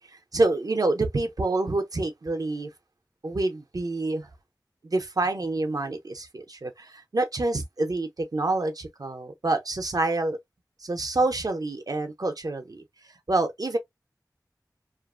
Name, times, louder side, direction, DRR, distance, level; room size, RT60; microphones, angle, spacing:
voice 1, 0.0-2.7 3.2-4.3 4.8-10.4 10.8-13.8, right 2 dB, 60° right, 0.6 m, -27 dB
2.5 x 2.4 x 2.4 m
wide cardioid pair, 40°, 7 cm